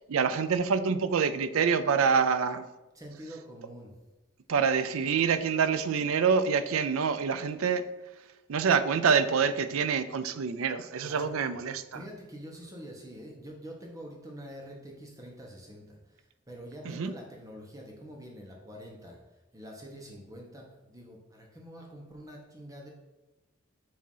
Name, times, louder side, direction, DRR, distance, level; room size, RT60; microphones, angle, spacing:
voice 1, 0.1-2.6 4.5-7.8 8.5-12.0 16.9-17.1, right 6 dB, 85° right, 12 dB, 0.4 m, -26 dB
voice 2, 2.9-3.9 11.0-19.2 19.5-22.9, equal, 15° right, 0 dB, 1.0 m, -46 dB
7.5 x 2.8 x 5.4 m, 1.1 s
head